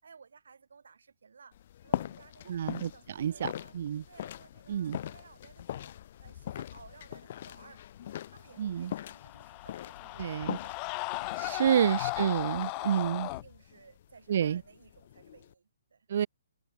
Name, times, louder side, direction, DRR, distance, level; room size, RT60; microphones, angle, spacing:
voice 1, 0.0-1.6 1.8-2.6 2.9-3.7 4.0-5.9 6.2-12.1 12.5-16.1, right 5 dB, 80° right, 6.3 m, -56 dB
sound 1, 1.5-15.5, left 11 dB, 40° left, 0.7 m, -42 dB
voice 2, 2.5-4.0 4.7-5.0 8.6-8.9 10.2-10.6 11.4-13.3 14.3-14.6 16.1-16.3, right 9 dB, 50° right, 0.6 m, -29 dB
sound 2, 9.0-13.4, left 34 dB, 20° left, 1.1 m, -36 dB
hypercardioid pair, 165°, 0 cm